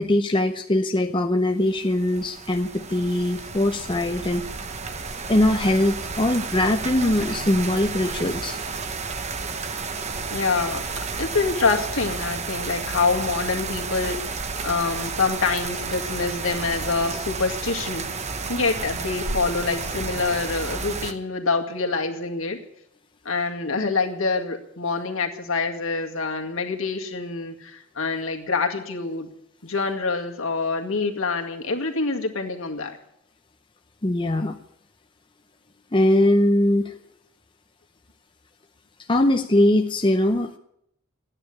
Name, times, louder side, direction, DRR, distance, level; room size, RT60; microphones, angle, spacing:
voice 1, 0.0-4.5 5.2-8.6 34.0-34.6 35.9-37.0 39.1-40.6, left 1 dB, 25° left, 5 dB, 0.7 m, -21 dB
sound 1, 1.6-21.1, right 4 dB, 30° right, 1.0 m, -32 dB
voice 2, 10.3-10.8 11.2-18.1 18.5-22.6 23.2-29.3 29.6-33.0, left 4 dB, 65° left, 3 dB, 2.2 m, -26 dB
14.5 x 9.9 x 9.9 m, 0.73 s
head